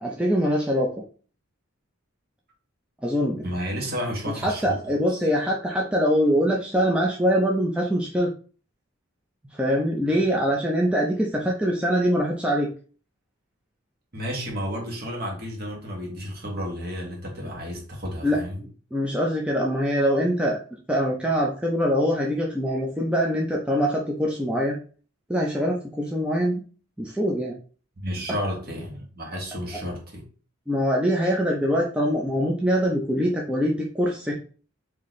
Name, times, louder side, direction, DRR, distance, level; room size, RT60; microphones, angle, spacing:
voice 1, 0.0-0.9 3.0-3.4 4.2-8.3 9.5-12.7 18.2-20.6 20.9-24.8 25.3-26.6 27.0-27.5 30.7-34.3, equal, 5° right, 0.5 m, -23 dB
voice 2, 3.4-4.8 14.1-18.6 22.7-22.8 28.0-30.2, equal, 45° right, 1.3 m, -32 dB
4.1 x 2.8 x 3.1 m
head